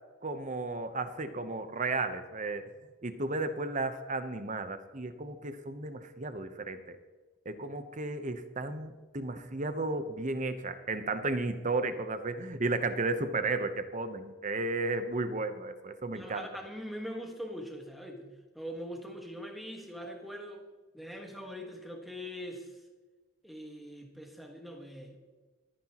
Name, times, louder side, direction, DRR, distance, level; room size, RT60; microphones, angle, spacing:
voice 1, 0.2-2.7 3.0-7.0 7.4-16.5, right 3 dB, 35° right, 10 dB, 0.9 m, -34 dB
voice 2, 16.1-20.7 20.9-22.8 23.4-25.2, equal, ahead, 2 dB, 1.5 m, -42 dB
25.0 x 9.6 x 3.0 m, 1.4 s
head